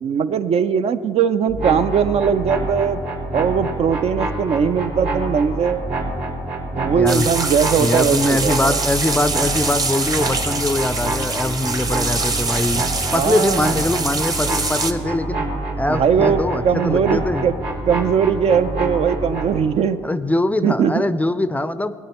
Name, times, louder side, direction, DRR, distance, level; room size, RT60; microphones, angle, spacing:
voice 1, 0.0-3.0 3.3-5.8 6.8-8.8 13.1-13.7 15.9-16.4 16.6-17.5 17.9-20.0 20.6-21.1, right 7 dB, 55° right, 11 dB, 0.5 m, -19 dB
sound 1, 1.5-19.6, right 2 dB, 75° right, 2.9 m, -27 dB
voice 2, 6.9-7.3 7.8-12.9 13.1-15.4 15.8-17.5 20.0-21.9, left 2 dB, 10° left, 12 dB, 0.4 m, -22 dB
sound 2, 7.1-14.9, right 3 dB, 30° right, 1.0 m, -24 dB
18.0 x 9.7 x 3.0 m, 2.1 s
supercardioid pair, 75°, 12 cm